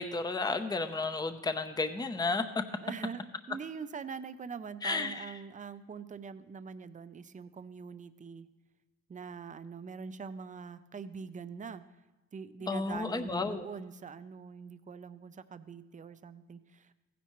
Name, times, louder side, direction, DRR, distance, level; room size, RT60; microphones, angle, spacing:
voice 1, 0.0-2.4 4.8-5.3 12.7-13.7, left 3 dB, 15° left, 9 dB, 0.7 m, -32 dB
voice 2, 2.8-8.5 9.1-11.8 12.3-16.9, right 6 dB, 25° right, 12 dB, 0.6 m, -43 dB
15.5 x 10.0 x 3.1 m, 1.1 s
cardioid pair, 90°, 30 cm